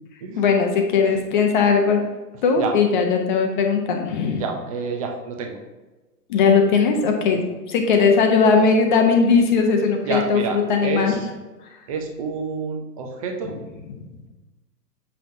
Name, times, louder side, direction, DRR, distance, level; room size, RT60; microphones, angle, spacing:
voice 1, 0.4-2.0 2.4-4.4 6.3-10.4 10.7-11.1, left 5 dB, 30° left, 3 dB, 0.8 m, -18 dB
voice 2, 4.3-5.6 7.3-7.4 10.0-11.3 11.9-13.6, right 5 dB, 20° right, 3 dB, 0.6 m, -28 dB
7.5 x 5.6 x 2.7 m, 1.2 s
hypercardioid pair, 140°, 49 cm